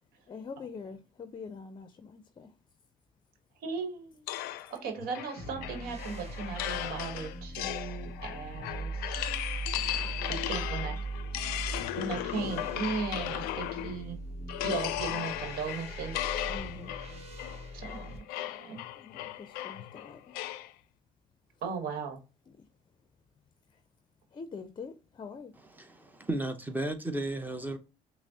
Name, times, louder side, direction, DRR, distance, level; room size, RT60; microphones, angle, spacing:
voice 1, 0.3-2.6 9.7-10.5 16.4-16.9 19.0-20.3 22.5-22.7 24.3-25.5, left 5 dB, 30° left, 0.5 m, -45 dB
voice 2, 3.6-4.2 4.7-8.9 10.2-10.9 12.0-14.2 14.6-16.3 17.7-18.2 18.6-18.8 21.6-22.2, right 5 dB, 75° right, 1.1 m, -37 dB
sound 1, 4.3-14.1 14.5-20.7, left 14 dB, 80° left, 0.4 m, -36 dB
sound 2, 5.4-18.2, right 3 dB, 45° right, 1.1 m, -40 dB
voice 3, 25.7-27.8, right 1 dB, 10° right, 0.7 m, -34 dB
5.8 x 2.0 x 2.7 m
supercardioid pair, 80°, 15 cm